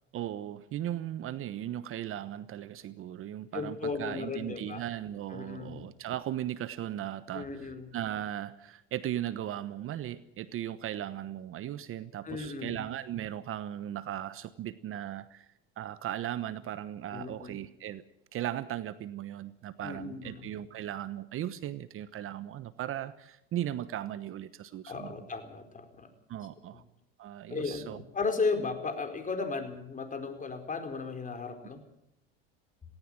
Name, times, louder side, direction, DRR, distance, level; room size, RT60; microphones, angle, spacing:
voice 1, 0.1-15.5 15.8-18.0 18.3-25.2 26.3-26.8 27.2-28.0, right 12 dB, 45° right, 15 dB, 1.1 m, -37 dB
voice 2, 3.5-4.8 5.3-5.8 7.3-7.9 12.2-12.9 17.1-17.5 19.8-20.5 24.9-26.1 27.5-31.8, left 4 dB, 25° left, 6 dB, 4.5 m, -35 dB
18.5 x 18.0 x 8.9 m, 0.78 s
hypercardioid pair, 85°, 30 cm